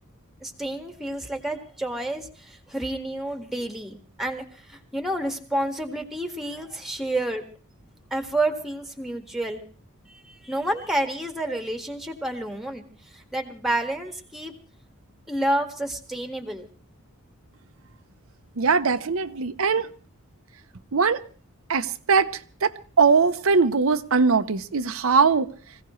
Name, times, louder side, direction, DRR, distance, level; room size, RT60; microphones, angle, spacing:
voice 1, 0.4-4.4 4.7-7.4 8.1-9.6 10.1-12.8 13.1-14.5 15.3-16.7, right 1 dB, ahead, 1.7 m, -29 dB
voice 2, 18.6-19.9 20.9-21.2 21.7-22.3 22.6-22.7 23.0-25.5, right 5 dB, 70° right, 0.7 m, -20 dB
25.0 x 16.0 x 3.1 m
head